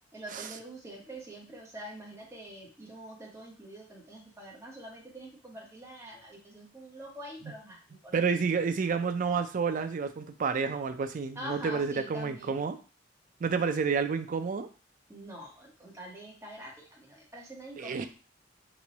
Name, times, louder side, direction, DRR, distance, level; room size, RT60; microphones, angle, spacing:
voice 1, 0.1-8.1 11.3-12.6 15.1-18.1, right 1 dB, 15° right, -3 dB, 0.9 m, -45 dB
voice 2, 8.1-12.8 13.4-14.7 17.8-18.1, right 5 dB, 45° right, 8 dB, 0.4 m, -30 dB
3.0 x 2.2 x 3.9 m, 0.35 s
head